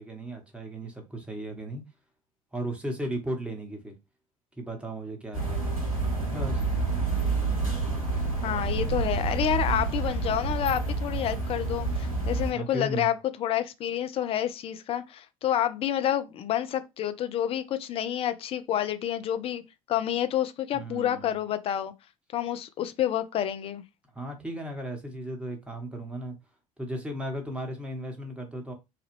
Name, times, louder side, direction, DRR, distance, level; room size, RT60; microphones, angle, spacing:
voice 1, 0.0-1.8 2.5-3.9 4.6-5.7 6.3-6.6 12.5-13.1 20.7-21.3 24.1-26.3 26.8-28.7, right 1 dB, 5° right, 1.1 m, -35 dB
sound 1, 5.3-12.5, right 3 dB, 90° right, 0.9 m, -28 dB
voice 2, 8.4-19.6 19.9-21.9 22.3-23.8, left 11 dB, 35° left, 0.4 m, -29 dB
3.2 x 2.3 x 3.1 m
figure-of-eight pair, 60°, 17 cm